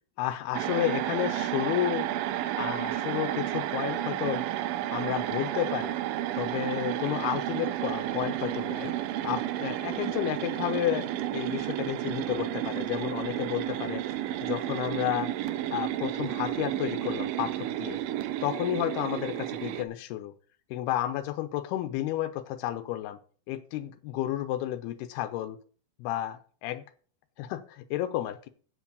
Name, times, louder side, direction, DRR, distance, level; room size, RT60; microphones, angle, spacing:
voice 1, 0.2-2.1 2.6-4.5 4.9-6.0 6.4-8.9 9.2-11.1 11.3-14.0 14.4-15.3 15.7-18.0 18.4-20.3 20.7-23.2 23.5-25.6 26.0-26.8 27.4-28.5, left 13 dB, 90° left, 9 dB, 2.7 m, -31 dB
sound 1, 0.5-19.8, right 13 dB, 90° right, 1.9 m, -32 dB
8.1 x 7.3 x 6.8 m, 0.43 s
omnidirectional pair, 4.6 m